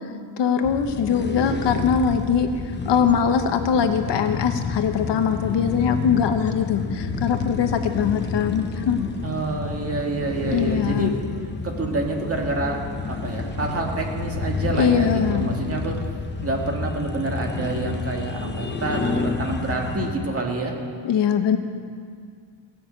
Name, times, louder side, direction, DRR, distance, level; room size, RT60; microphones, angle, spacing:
voice 1, 0.4-2.5 2.8-9.1 10.5-11.2 14.8-15.5 21.0-21.6, left 7 dB, 65° left, 7 dB, 1.0 m, -22 dB
sound 1, 0.6-20.2, left 4 dB, 25° left, 0.8 m, -30 dB
voice 2, 9.2-11.1 11.6-16.0 16.4-20.7, right 3 dB, 30° right, 1 dB, 2.0 m, -27 dB
17.0 x 6.5 x 8.8 m, 2.1 s
cardioid pair, 140°, 46 cm